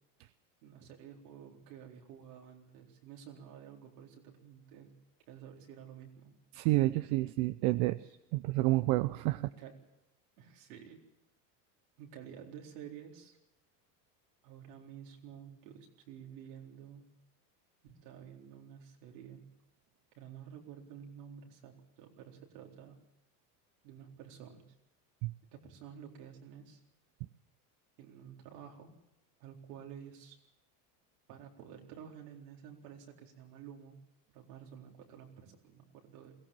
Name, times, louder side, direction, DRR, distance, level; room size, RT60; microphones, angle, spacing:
voice 1, 0.6-4.9 5.3-6.3 7.6-8.2 9.3-9.8 10.4-11.0 12.0-13.4 14.4-17.1 17.8-19.5 20.2-23.0 23.8-24.6 25.5-26.8 28.0-28.9 29.4-30.4 31.3-34.0 34.3-36.4, right 8 dB, 80° right, 1 dB, 4.2 m, -51 dB
voice 2, 6.5-8.0 8.3-9.4 25.2-25.3, right 19 dB, 65° right, 13 dB, 0.8 m, -29 dB
22.5 x 16.5 x 7.5 m, 0.86 s
supercardioid pair, 95°, 47 cm